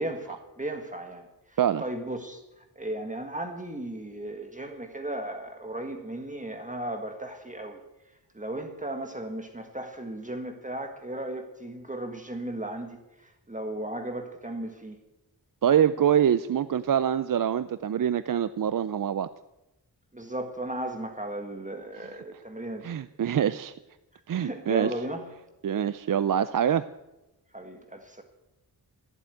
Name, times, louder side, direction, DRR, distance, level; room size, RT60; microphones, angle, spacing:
voice 1, 0.0-7.8 8.3-15.0 20.1-22.9 24.3-25.4 27.5-28.2, right 1 dB, 20° right, 5 dB, 1.6 m, -36 dB
voice 2, 15.6-19.3 22.8-23.7 24.3-24.9 25.6-26.9, right 9 dB, 55° right, 14 dB, 0.5 m, -25 dB
14.5 x 8.0 x 9.2 m, 0.97 s
wide cardioid pair, 105°, 40 cm